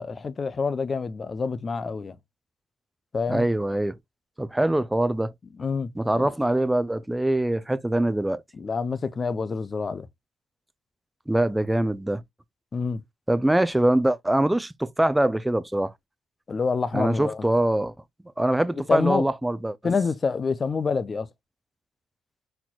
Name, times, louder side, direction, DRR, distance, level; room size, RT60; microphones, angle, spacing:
voice 1, 0.0-2.2 3.1-3.5 5.6-6.3 8.5-10.1 12.7-13.0 16.5-17.5 18.9-19.3 19.8-21.3, left 5 dB, 40° left, 0.7 m, -27 dB
voice 2, 3.3-4.0 4.4-5.3 6.0-8.4 11.3-12.2 13.3-15.9 16.9-17.9 18.4-19.8, right 1 dB, 10° right, 0.6 m, -23 dB
4.3 x 4.2 x 2.4 m
hypercardioid pair, 55°, 0 cm